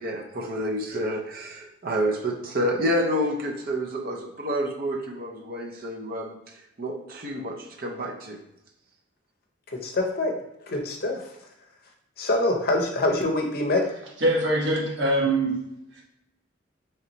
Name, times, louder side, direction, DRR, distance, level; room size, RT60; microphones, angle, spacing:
voice 1, 0.0-6.4 6.8-8.4, equal, 45° right, 0 dB, 0.6 m, -29 dB
voice 2, 9.8-10.3 10.7-11.3 12.2-13.9, left 2 dB, 50° left, 2 dB, 0.6 m, -24 dB
voice 3, 14.2-16.0, right 1 dB, 60° right, -2 dB, 1.1 m, -24 dB
3.2 x 2.9 x 3.9 m, 0.85 s
head